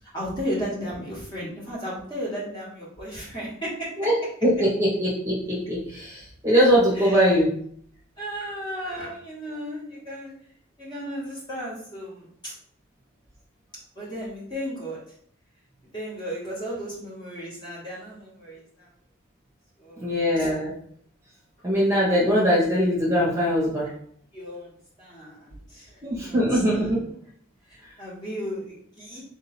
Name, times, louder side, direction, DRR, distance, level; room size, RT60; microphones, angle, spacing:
voice 1, 0.1-3.9 6.9-7.4 8.2-10.3 10.8-12.5 13.9-15.0 15.9-18.9 19.8-20.1 20.4-20.5 24.3-24.7 25.0-26.9 27.7-29.2, equal, 20° left, -6 dB, 1.4 m, -35 dB
voice 2, 4.4-7.5 20.0-20.7 21.6-23.9 26.0-27.0, equal, 15° right, -6 dB, 1.1 m, -21 dB
3.8 x 2.7 x 4.2 m, 0.64 s
head